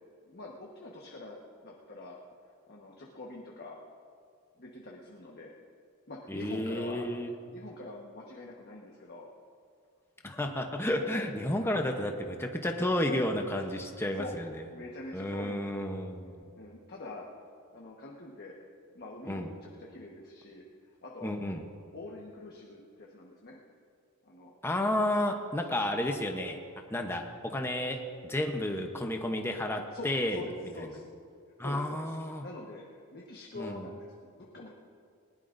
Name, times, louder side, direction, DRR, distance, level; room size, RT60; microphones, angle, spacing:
voice 1, 0.3-1.4 1.6-2.2 2.7-3.8 4.6-5.5 6.1-7.1 7.5-9.3 11.1-11.3 13.5-13.6 14.1-14.3 14.7-15.9 16.6-17.3 17.7-18.6 18.9-20.6 21.0-21.3 21.9-23.6 24.2-24.5 29.9-31.0 31.6-34.7, left 2 dB, 45° left, -2 dB, 1.3 m, -45 dB
voice 2, 6.3-7.3 10.2-14.5 15.1-16.4 19.3-19.5 21.2-21.6 24.6-26.6 26.9-30.4 31.6-32.4 33.6-33.9, left 1 dB, 10° left, 3 dB, 0.8 m, -31 dB
20.0 x 19.5 x 2.6 m, 2.3 s
head